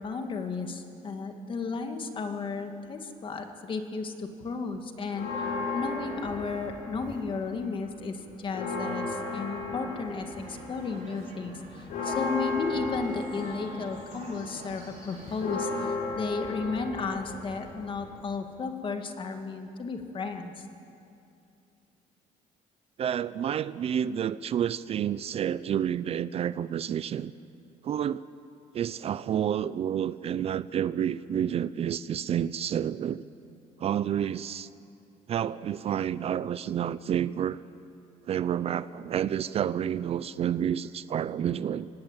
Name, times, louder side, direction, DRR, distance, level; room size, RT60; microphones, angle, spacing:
voice 1, 0.0-5.5 5.7-20.6, left 4 dB, 35° left, 6 dB, 2.0 m, -34 dB
sound 1, 5.1-7.5 7.8-18.3, left 3 dB, 75° left, 7.2 m, -35 dB
sound 2, 9.7-15.9, right 3 dB, 60° right, 4.5 m, -49 dB
voice 2, 23.0-27.3 27.8-28.2 28.7-33.3 33.8-34.7 35.3-37.6 38.3-41.9, right 9 dB, 45° right, 17 dB, 0.5 m, -29 dB
24.5 x 18.5 x 8.9 m, 2.6 s
cardioid pair, 140°, 14 cm